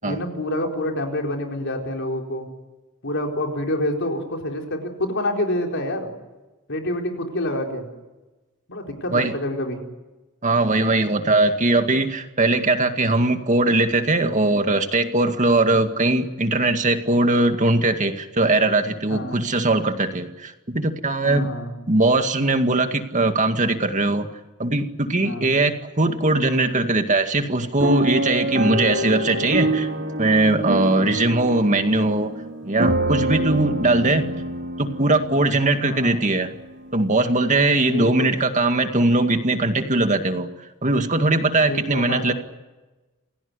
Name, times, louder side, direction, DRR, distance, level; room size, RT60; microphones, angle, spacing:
voice 1, 0.0-2.5 3.0-6.1 6.7-7.9 8.7-9.8 19.1-19.4 21.2-21.7 25.2-25.6 35.8-36.2 37.8-38.3 41.5-42.3, left 1 dB, 60° left, 2 dB, 4.4 m, -27 dB
voice 2, 10.4-21.5 21.9-24.3 24.6-29.9 30.2-32.3 32.6-34.3 34.8-36.5 36.9-40.5 40.8-42.3, right 2 dB, 35° right, 6 dB, 2.1 m, -20 dB
sound 1, 27.8-35.9 36.5-36.6 36.9-37.1, right 1 dB, 55° right, 2.8 m, -26 dB
28.5 x 17.0 x 9.9 m, 1.1 s
head